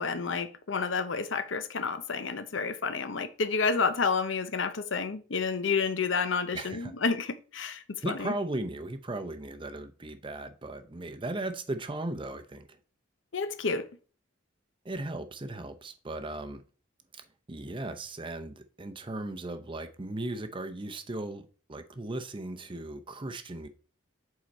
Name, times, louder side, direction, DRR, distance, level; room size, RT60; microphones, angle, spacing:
voice 1, 0.0-8.3 13.3-13.9, left 5 dB, 70° left, 0.7 m, -30 dB
voice 2, 6.5-6.9 8.0-12.8 14.8-16.6 17.1-23.7, right 2 dB, 25° right, 0.6 m, -37 dB
7.7 x 4.7 x 4.2 m
head